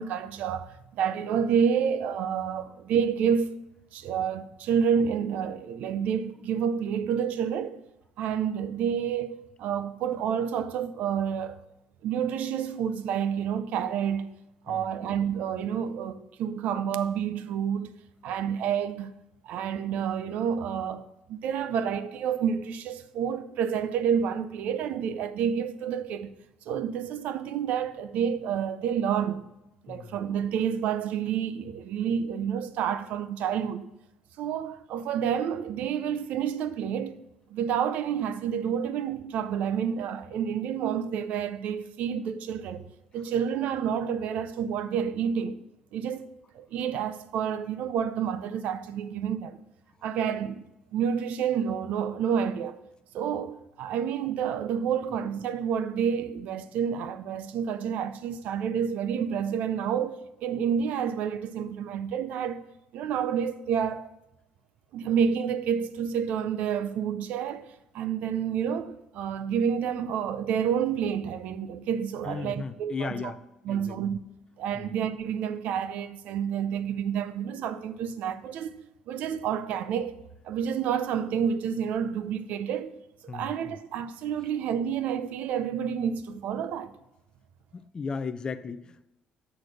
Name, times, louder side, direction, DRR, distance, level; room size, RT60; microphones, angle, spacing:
voice 1, 0.0-3.5 3.9-7.8 8.2-11.6 12.0-14.4 14.7-17.9 18.2-19.1 19.4-21.0 21.3-26.3 26.7-29.4 29.8-33.9 34.4-37.2 37.5-42.9 43.1-45.6 45.9-46.3 46.5-49.6 50.0-50.7 50.9-52.8 53.1-62.6 62.9-64.1 64.9-67.7 67.9-73.3 73.7-74.2 74.6-78.8 79.1-80.1 80.4-82.9 83.2-86.9, right 8 dB, 70° right, 0.5 m, -29 dB
voice 2, 72.2-73.4 73.7-74.0 74.7-74.9 83.3-83.8 87.7-89.1, left 5 dB, 30° left, 0.5 m, -36 dB
6.6 x 4.2 x 6.4 m
cardioid pair, 90°, 3 cm